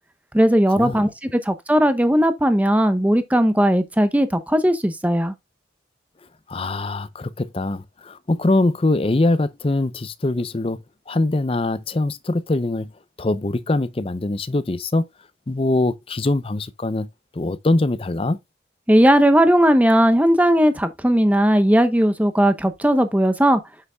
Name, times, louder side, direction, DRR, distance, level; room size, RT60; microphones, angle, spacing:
voice 1, 0.3-5.3 18.9-23.6, equal, 10° right, 0.8 m, -17 dB
voice 2, 6.5-12.9 13.2-15.1 15.5-17.1 17.3-18.4, left 2 dB, 30° left, 0.5 m, -23 dB
8.1 x 7.8 x 2.3 m
head